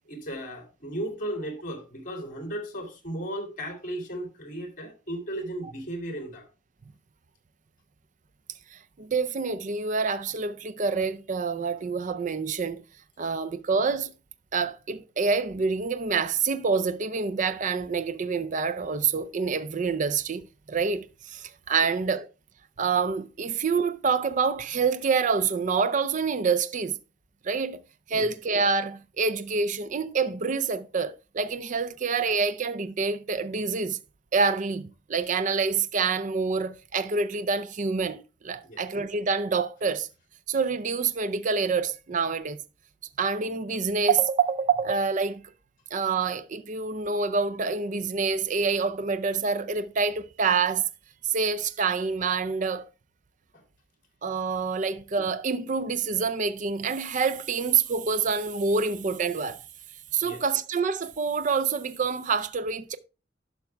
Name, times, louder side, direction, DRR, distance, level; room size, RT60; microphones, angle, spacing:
voice 1, 0.1-6.4 28.1-28.3 38.7-38.8 53.5-53.6 60.2-60.4, right 1 dB, 45° left, 2.5 m, -35 dB
voice 2, 8.7-12.8 13.2-14.1 14.5-22.3 22.8-27.0 27.4-27.8 28.1-34.0 34.3-40.1 40.5-42.6 43.2-45.4 45.9-50.9 51.2-52.9 54.2-59.6 60.1-63.0, right 5 dB, 45° right, 0.5 m, -27 dB
11.5 x 5.8 x 3.3 m
head